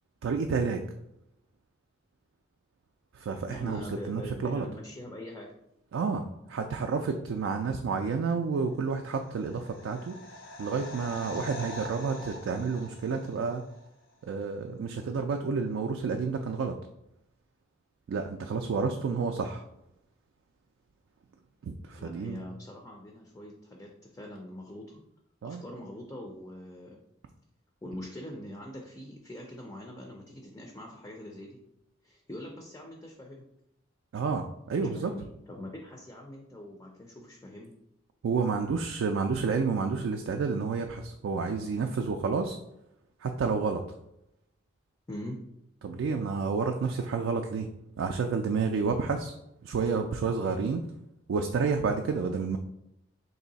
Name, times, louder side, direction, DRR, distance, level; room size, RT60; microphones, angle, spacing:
voice 1, 0.2-0.8 3.2-3.8 4.1-4.7 5.9-10.2 10.6-13.6 14.2-16.8 18.1-19.6 21.6-22.4 25.4-25.6 34.1-35.1 38.2-42.6 43.2-43.8 45.8-47.7 48.0-49.3 49.6-50.8 51.3-52.6, right 5 dB, 75° right, 4 dB, 0.3 m, -30 dB
voice 2, 3.5-5.5 22.0-25.0 25.4-27.0 27.8-31.6 32.0-33.4 34.7-37.7 45.1-45.4, left 1 dB, 15° left, 1 dB, 0.3 m, -43 dB
sound 1, 9.0-13.9 14.1-14.2, left 1 dB, 70° left, 0.6 m, -44 dB
3.2 x 2.7 x 3.9 m, 0.82 s
head